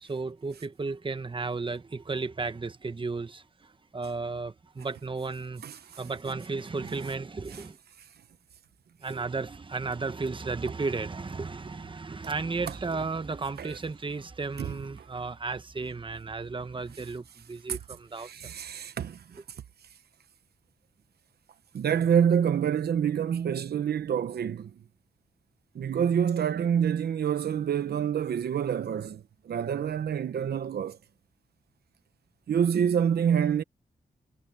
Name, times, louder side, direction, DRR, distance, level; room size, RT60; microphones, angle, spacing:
voice 1, 0.0-7.8 9.0-18.5, right 4 dB, 30° right, 1.1 m, -34 dB
voice 2, 18.2-19.2 21.7-24.7 25.7-31.0 32.5-33.6, right 8 dB, 85° right, 0.9 m, -27 dB
cardioid pair, 80°, 16 cm